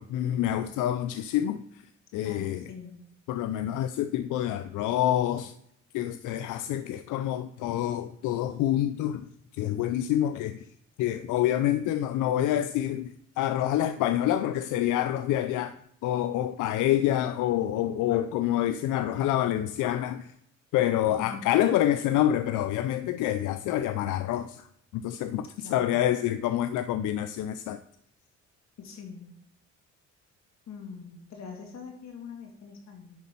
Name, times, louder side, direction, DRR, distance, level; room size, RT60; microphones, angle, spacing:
voice 1, 0.0-1.6 2.1-2.6 3.3-5.5 5.9-9.3 9.5-10.6 11.0-20.3 20.7-24.7 24.9-27.8, left 12 dB, 90° left, 0.5 m, -27 dB
voice 2, 2.2-3.0 21.0-21.5 25.6-26.0 28.8-29.3 30.7-33.1, left 6 dB, 60° left, 2.3 m, -43 dB
10.5 x 4.1 x 5.3 m
cardioid pair, 90°, 30 cm